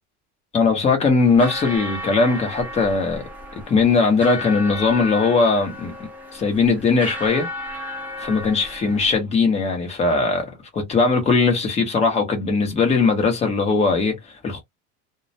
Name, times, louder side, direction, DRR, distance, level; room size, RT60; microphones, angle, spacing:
voice 1, 0.5-3.2 3.7-5.9 6.3-7.5 8.2-14.6, left 4 dB, 20° left, 0.8 m, -19 dB
sound 1, 1.2-9.2, left 1 dB, 5° right, 0.4 m, -34 dB
2.2 x 2.1 x 2.6 m
cardioid pair, 155°, 33 cm